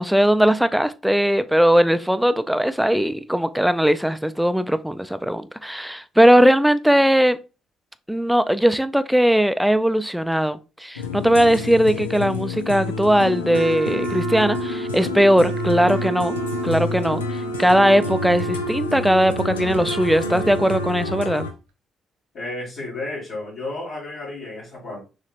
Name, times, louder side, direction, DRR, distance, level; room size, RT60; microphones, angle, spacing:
voice 1, 0.0-7.4 8.1-16.4 16.6-21.5, equal, 5° right, 0.5 m, -19 dB
sound 1, 11.0-21.5, left 4 dB, 80° left, 0.4 m, -29 dB
Wind instrument woodwind instrument, 13.5-21.4, right 6 dB, 75° right, 0.6 m, -31 dB
voice 2, 22.3-25.0, left 2 dB, 60° left, 2.0 m, -32 dB
6.2 x 3.2 x 2.5 m
figure-of-eight pair, 40°, 0 cm